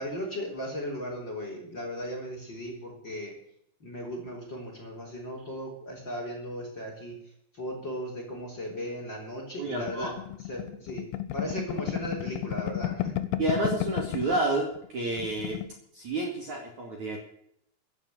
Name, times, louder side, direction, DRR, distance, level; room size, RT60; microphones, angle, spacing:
voice 1, 0.0-3.3 3.8-7.2 7.5-10.1 10.4-11.0 11.3-13.2, equal, 25° left, 1 dB, 3.4 m, -36 dB
voice 2, 9.6-10.1 13.4-15.6 15.9-17.2, right 2 dB, 45° right, 0 dB, 2.9 m, -30 dB
sound 1, 9.9-14.4 14.7-14.9 15.1-15.7, left 14 dB, 75° left, 3.1 m, -32 dB
15.5 x 9.1 x 8.3 m, 0.73 s
omnidirectional pair, 5.7 m